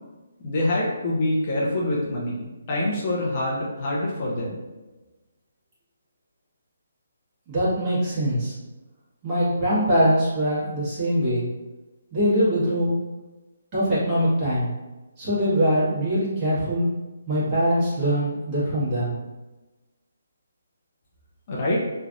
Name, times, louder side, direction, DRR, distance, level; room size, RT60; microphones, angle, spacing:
voice 1, 0.4-4.6 21.5-21.8, left 1 dB, 40° left, -5 dB, 0.7 m, -25 dB
voice 2, 7.5-8.5 9.2-11.5 12.1-12.9 13.7-14.7 15.2-16.9 17.3-19.2, equal, 25° right, -10 dB, 1.5 m, -22 dB
3.2 x 2.4 x 2.5 m, 1.1 s
hypercardioid pair, 155°, 0 cm